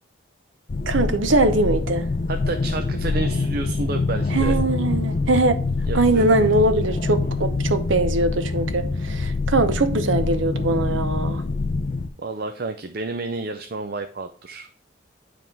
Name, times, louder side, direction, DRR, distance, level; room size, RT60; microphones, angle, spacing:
sound 1, 0.7-12.1, left 3 dB, 40° left, 0.4 m, -25 dB
voice 1, 0.9-2.0 4.3-5.6 5.9-11.4, right 2 dB, 80° right, 0.8 m, -21 dB
voice 2, 2.3-4.6 5.9-6.5 7.2-7.3 12.2-14.7, right 3 dB, 50° right, 0.5 m, -30 dB
10.0 x 3.6 x 4.5 m
head